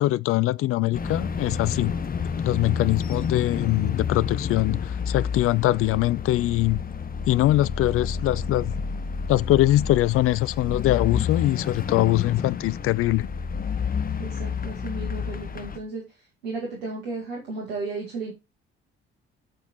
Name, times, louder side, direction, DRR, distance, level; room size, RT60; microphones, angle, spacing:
voice 1, 0.0-1.9 2.4-6.8 7.3-8.7 9.3-13.3, left 16 dB, 50° left, 0.5 m, -22 dB
sound 1, 0.9-15.8, left 6 dB, 30° left, 1.2 m, -30 dB
voice 2, 14.2-16.0 16.4-18.3, right 3 dB, 80° right, 2.3 m, -34 dB
8.7 x 4.3 x 4.5 m
hypercardioid pair, 50°, 29 cm